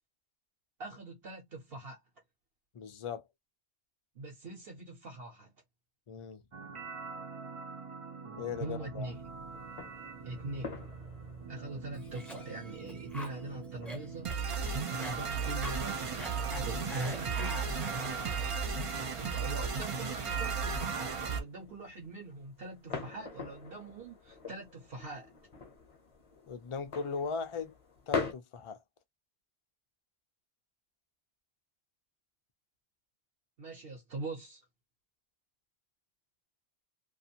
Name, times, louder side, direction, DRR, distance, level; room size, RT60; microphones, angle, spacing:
voice 1, 0.8-2.0 4.1-5.5 8.6-9.2 10.2-10.7 11.5-14.3 14.9-17.7 18.9-25.3 33.6-34.6, right 2 dB, 65° right, 1.0 m, -43 dB
voice 2, 2.7-3.3 6.1-6.4 8.4-9.1 26.5-27.7 28.1-28.8, left 5 dB, 50° left, 0.3 m, -38 dB
sound 1, 6.5-21.4, right 5 dB, 45° right, 0.4 m, -37 dB
sound 2, 9.0-28.3, left 5 dB, 35° left, 0.8 m, -45 dB
Cough, 11.9-18.5, equal, ahead, 0.6 m, -46 dB
2.5 x 2.4 x 2.7 m
omnidirectional pair, 1.1 m